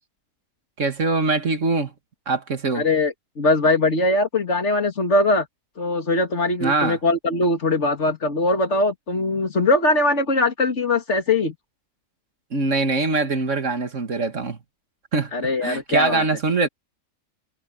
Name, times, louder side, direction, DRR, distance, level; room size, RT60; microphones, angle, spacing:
voice 1, 0.8-1.9 2.3-2.8 6.6-7.0 12.5-14.6 15.1-15.3 15.6-16.7, right 3 dB, 60° right, 2.3 m, -23 dB
voice 2, 2.7-5.5 5.8-11.5 15.3-16.2, left 2 dB, 55° left, 2.7 m, -21 dB
omnidirectional pair, 1.5 m